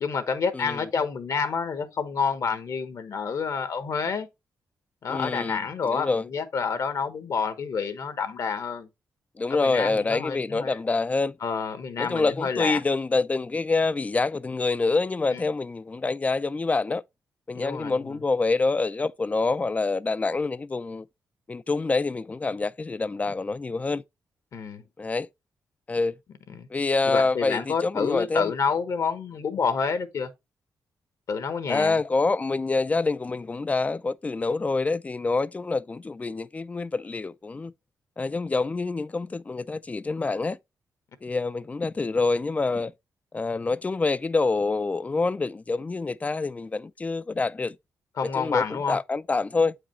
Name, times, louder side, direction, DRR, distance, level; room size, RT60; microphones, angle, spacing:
voice 1, 0.0-4.3 5.0-8.9 9.5-10.8 11.4-12.8 15.3-15.4 17.5-18.2 24.5-24.8 26.5-26.7 27.1-30.3 31.3-32.0 48.2-49.0, left 5 dB, 60° left, 1.1 m, -28 dB
voice 2, 5.1-6.3 9.4-11.4 12.0-17.0 17.5-21.1 21.5-24.0 25.0-25.3 25.9-26.1 26.7-28.5 31.7-37.7 38.2-40.6 41.2-42.9 43.3-47.8 48.3-49.8, left 3 dB, 20° left, 0.3 m, -26 dB
8.4 x 4.9 x 3.0 m
cardioid pair, 115°, 6 cm